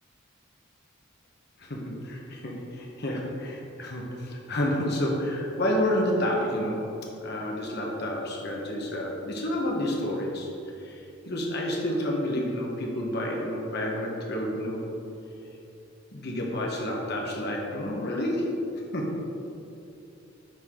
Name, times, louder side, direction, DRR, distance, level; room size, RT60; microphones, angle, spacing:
voice 1, 1.6-6.9 7.2-10.5 10.8-14.9 16.1-18.5 18.9-19.2, left 1 dB, 55° left, -1 dB, 1.3 m, -29 dB
8.9 x 4.9 x 3.8 m, 2.8 s
head